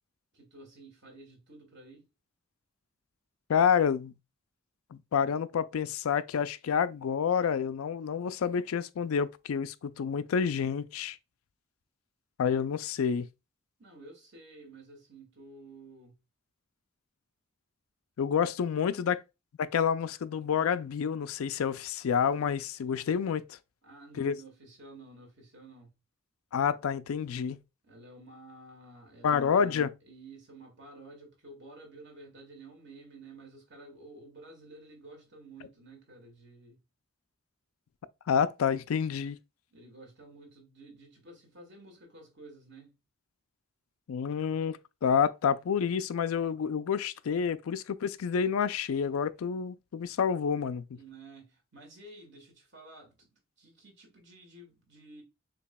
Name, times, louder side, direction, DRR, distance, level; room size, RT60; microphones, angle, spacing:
voice 1, 0.3-2.1 13.8-16.2 23.8-25.9 27.8-36.8 39.7-43.0 50.9-55.2, right 2 dB, 55° right, 2.0 m, -52 dB
voice 2, 3.5-4.1 4.9-11.2 12.4-13.3 18.2-19.2 19.6-23.6 24.2-24.3 26.5-27.6 29.2-29.9 38.3-39.4 44.1-50.8, left 7 dB, 85° left, 0.4 m, -28 dB
6.8 x 2.9 x 2.2 m
head